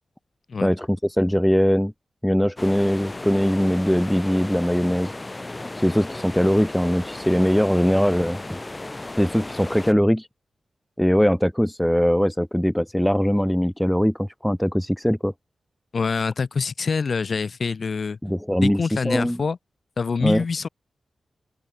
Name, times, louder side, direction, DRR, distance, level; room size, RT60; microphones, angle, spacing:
voice 1, 0.6-1.9 2.2-5.1 5.7-8.6 9.2-10.3 11.0-15.3 18.2-19.4 20.2-20.4, equal, 5° left, 0.7 m, -21 dB
sound 1, 2.6-9.9, left 2 dB, 20° left, 7.6 m, -35 dB
voice 2, 15.9-18.2 18.6-19.6 20.0-20.7, left 5 dB, 50° left, 2.9 m, -25 dB
open air
wide cardioid pair, 105°, 0 cm